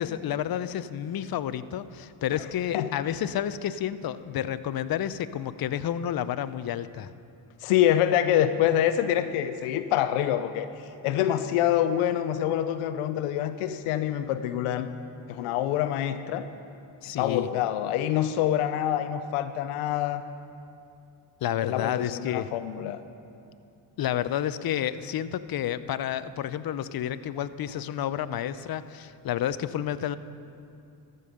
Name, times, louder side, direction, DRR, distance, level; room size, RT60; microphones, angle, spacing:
voice 1, 0.0-7.1 17.0-17.5 21.4-22.5 24.0-30.2, left 10 dB, 45° left, 14 dB, 0.6 m, -30 dB
voice 2, 7.6-10.7 11.0-14.9 15.3-16.5 17.2-20.2 21.6-23.0, left 11 dB, 90° left, 11 dB, 0.6 m, -26 dB
13.5 x 5.5 x 6.6 m, 2.6 s
supercardioid pair, 55°, 50 cm